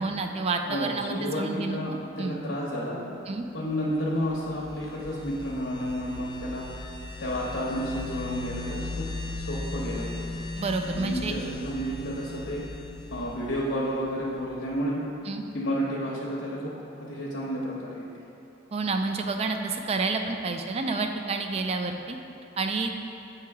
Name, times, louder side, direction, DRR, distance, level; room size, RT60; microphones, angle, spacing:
voice 1, 0.0-1.8 2.2-2.4 3.3-3.5 10.6-11.3 15.3-15.4 18.7-22.2 22.6-22.9, right 3 dB, 30° right, 5 dB, 0.4 m, -29 dB
voice 2, 0.7-3.0 3.5-6.7 7.2-9.0 9.3-10.1 10.8-12.6 13.1-15.0 15.5-16.7 17.0-18.1, equal, 75° left, -5 dB, 0.8 m, -31 dB
sound 1, 3.9-14.5, left 2 dB, 25° left, 0.5 m, -38 dB
8.1 x 2.8 x 4.7 m, 2.8 s
head